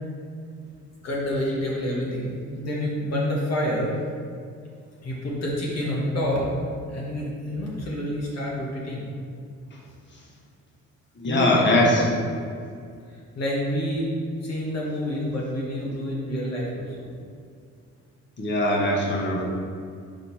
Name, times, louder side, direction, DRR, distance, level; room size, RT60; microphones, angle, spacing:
voice 1, 1.0-3.9 5.0-6.4 6.9-9.1 11.3-11.9 13.3-14.1 14.4-17.1, equal, 55° left, -4 dB, 1.2 m, -28 dB
voice 2, 11.2-12.0 18.4-19.4, left 1 dB, 40° left, -3 dB, 1.3 m, -21 dB
5.1 x 4.2 x 4.3 m, 2.3 s
cardioid pair, 90°, 30 cm